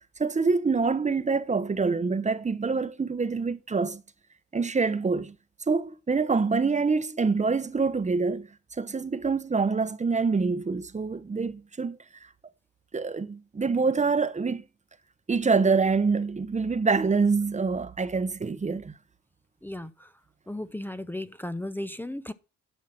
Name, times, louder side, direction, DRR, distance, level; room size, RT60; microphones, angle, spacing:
voice 1, 0.2-4.0 4.5-5.3 5.7-8.5 8.8-12.0 12.9-14.6 15.3-18.9, right 4 dB, 25° right, 0.9 m, -26 dB
voice 2, 19.6-20.1 20.5-22.3, left 1 dB, 5° left, 0.7 m, -35 dB
11.0 x 5.7 x 5.8 m
cardioid pair, 90°, 30 cm